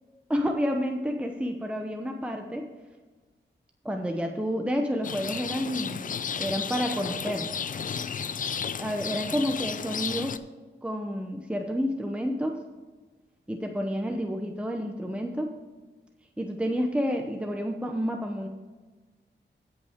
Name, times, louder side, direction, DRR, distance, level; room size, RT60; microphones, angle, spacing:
voice 1, 0.3-2.7 3.8-6.0 6.4-7.5 8.8-10.4 10.8-12.6 13.5-15.5 16.4-18.5, equal, 5° right, 3 dB, 0.7 m, -29 dB
Rain, 5.0-10.4, left 7 dB, 45° left, 0.4 m, -33 dB
16.0 x 5.6 x 3.5 m, 1.3 s
wide cardioid pair, 115°, 19 cm